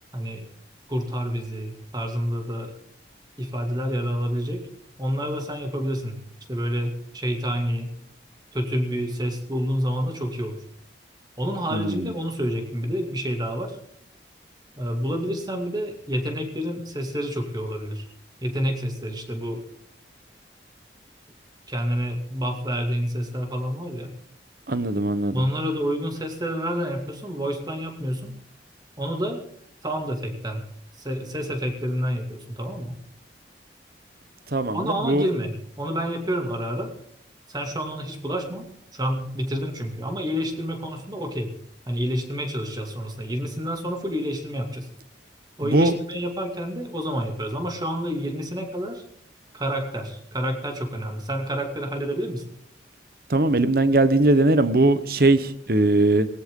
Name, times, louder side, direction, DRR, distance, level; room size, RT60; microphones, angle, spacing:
voice 1, 0.1-0.4 0.9-2.7 3.4-4.6 5.0-6.1 6.5-7.9 8.5-10.6 11.4-13.8 14.8-18.1 18.4-19.6 21.7-24.1 25.3-28.3 29.0-29.4 29.8-30.6 31.0-33.0 34.7-35.5 35.8-36.9 37.5-38.7 38.9-41.5 41.9-44.9 45.6-49.0 49.5-52.5, equal, 20° right, 3 dB, 2.5 m, -28 dB
voice 2, 11.7-12.1 24.7-25.4 34.5-35.3 45.6-45.9 53.3-56.3, right 2 dB, 55° right, 13 dB, 1.1 m, -20 dB
18.5 x 18.0 x 3.8 m, 0.67 s
head